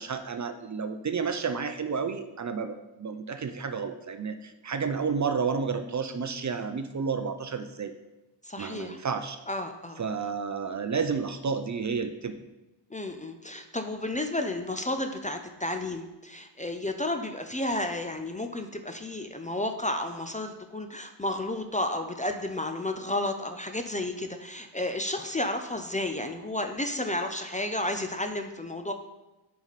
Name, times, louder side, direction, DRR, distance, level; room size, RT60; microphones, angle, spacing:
voice 1, 0.0-7.9 8.6-9.4 10.0-12.3, right 5 dB, 40° right, 8 dB, 0.5 m, -31 dB
voice 2, 8.4-9.0 9.5-10.0 12.9-28.9, left 1 dB, 15° left, 6 dB, 0.5 m, -32 dB
9.5 x 4.7 x 4.1 m, 1.0 s
wide cardioid pair, 100°, 46 cm